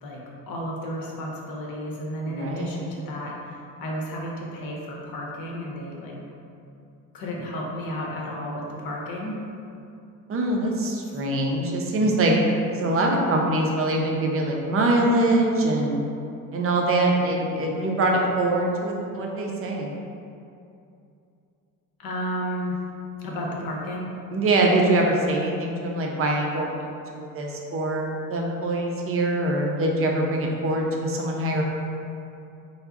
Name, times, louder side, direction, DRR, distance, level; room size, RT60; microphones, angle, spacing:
voice 1, 0.0-6.1 7.1-9.4 10.8-10.9 22.0-22.8 23.2-24.1, equal, 50° left, -2 dB, 0.8 m, -32 dB
voice 2, 2.3-2.7 10.3-12.4 12.7-16.1 16.5-19.9 24.3-31.6, right 1 dB, 30° right, 0 dB, 0.6 m, -23 dB
3.3 x 2.1 x 3.6 m, 2.6 s
hypercardioid pair, 60°, 46 cm